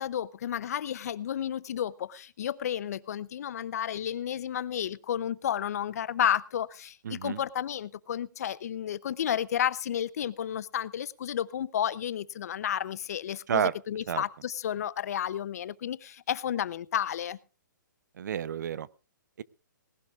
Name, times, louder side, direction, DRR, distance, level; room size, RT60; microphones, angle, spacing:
voice 1, 0.0-17.4, left 10 dB, 50° left, 19 dB, 0.7 m, -32 dB
voice 2, 7.0-7.4 13.5-13.7 14.1-14.2 18.2-18.9 19.4-19.5, right 9 dB, 60° right, 21 dB, 0.6 m, -30 dB
19.0 x 17.5 x 2.4 m, 0.32 s
hypercardioid pair, 165°, 11 cm